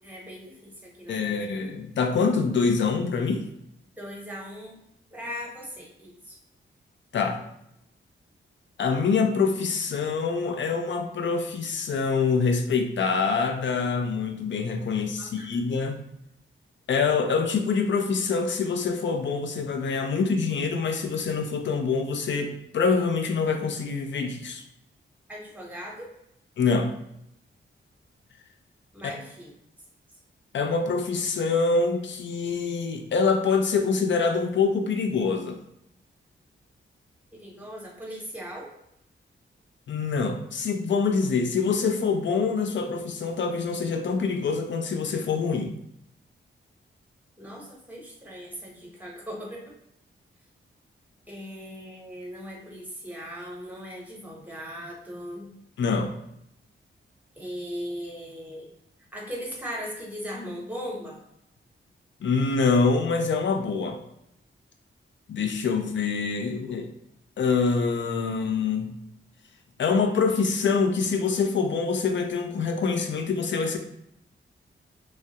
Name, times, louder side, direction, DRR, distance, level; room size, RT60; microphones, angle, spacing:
voice 1, 0.0-1.5 4.0-4.8 5.1-6.4 15.2-15.5 25.3-26.1 28.9-29.5 37.3-38.7 47.4-49.7 51.3-55.5 57.3-58.7 59.1-61.2, equal, 10° right, -3 dB, 0.8 m, -38 dB
voice 2, 1.1-3.4 7.1-7.4 8.8-16.0 16.9-24.6 26.6-26.9 30.5-35.6 39.9-45.7 55.8-56.1 62.2-64.0 65.3-66.9 67.4-68.9 69.8-73.8, left 5 dB, 60° left, 5 dB, 0.4 m, -25 dB
3.1 x 2.3 x 2.8 m, 0.79 s
wide cardioid pair, 130°, 21 cm